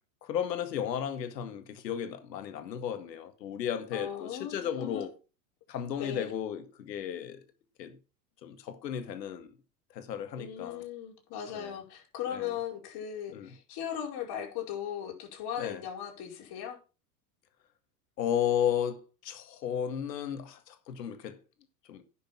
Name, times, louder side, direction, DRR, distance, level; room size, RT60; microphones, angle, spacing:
voice 1, 0.2-5.1 5.7-7.4 7.8-8.0 8.4-9.5 9.9-10.8 11.5-11.7 12.3-12.5 13.3-13.5 15.6-15.8 18.2-21.4 21.9-22.0, left 9 dB, 80° left, 2.0 m, -34 dB
voice 2, 3.9-5.0 6.0-6.3 10.4-16.8, left 9 dB, 50° left, 5.1 m, -38 dB
10.0 x 6.7 x 5.9 m
hypercardioid pair, 95°, 49 cm